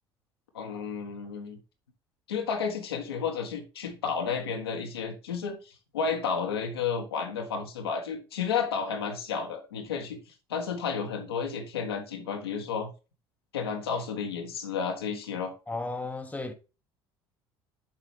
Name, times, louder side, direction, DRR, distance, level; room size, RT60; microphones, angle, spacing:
voice 1, 0.5-1.6 2.3-10.2 10.5-12.9 13.5-15.5, left 6 dB, 80° left, 1.3 m, -32 dB
voice 2, 15.7-16.5, left 3 dB, 10° left, 1.1 m, -34 dB
7.6 x 4.9 x 3.3 m
figure-of-eight pair, 60°, 13 cm